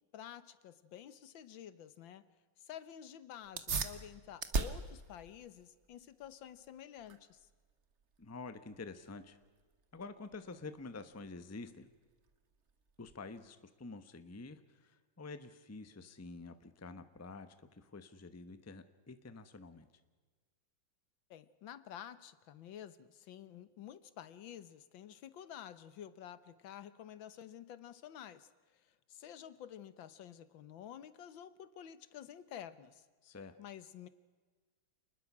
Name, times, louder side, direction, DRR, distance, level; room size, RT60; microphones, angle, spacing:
voice 1, 0.1-2.3 2.6-7.5 21.3-33.1 33.6-34.1, left 10 dB, 80° left, 14 dB, 1.8 m, -50 dB
sound 1, 3.4-13.5, right 4 dB, 40° right, 1.4 m, -43 dB
voice 2, 8.2-9.4 9.9-11.9 13.0-19.9 33.2-33.6, left 3 dB, 15° left, 11 dB, 0.7 m, -48 dB
28.0 x 20.5 x 6.1 m, 1.4 s
omnidirectional pair, 2.1 m